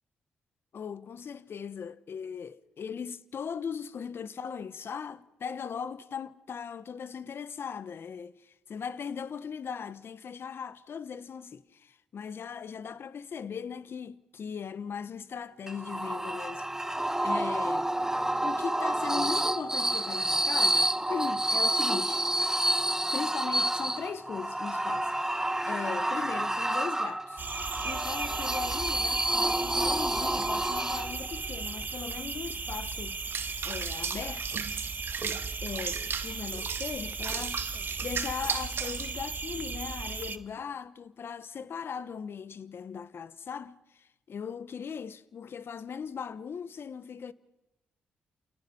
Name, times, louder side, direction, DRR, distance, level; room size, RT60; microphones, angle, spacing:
voice 1, 0.7-17.9 18.4-22.3 23.1-27.5 27.8-33.3 33.6-34.7 35.2-37.6 38.0-47.3, left 7 dB, 60° left, 1.2 m, -39 dB
sound 1, 15.7-31.4, right 1 dB, 10° right, 1.2 m, -29 dB
sound 2, 27.4-40.4, right 4 dB, 45° right, 1.7 m, -36 dB
Water / Bathtub (filling or washing), 33.3-39.1, right 7 dB, 60° right, 2.0 m, -36 dB
29.0 x 29.0 x 5.6 m
hypercardioid pair, 45°, 5 cm